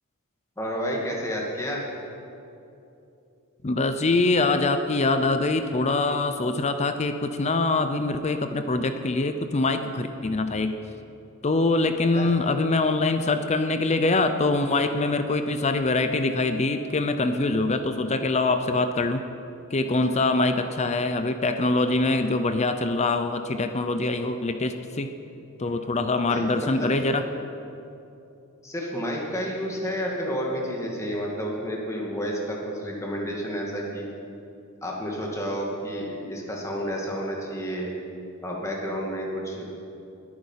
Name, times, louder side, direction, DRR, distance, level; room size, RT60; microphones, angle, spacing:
voice 1, 0.6-1.8 12.1-12.3 25.6-25.7 26.2-26.9 28.6-34.1 34.8-37.9 38.4-39.7, equal, 15° left, -2 dB, 2.3 m, -30 dB
voice 2, 3.6-10.8 11.4-19.2 19.7-25.1 25.6-27.2, left 2 dB, 30° left, 8 dB, 0.6 m, -24 dB
21.0 x 9.5 x 5.7 m, 2.7 s
head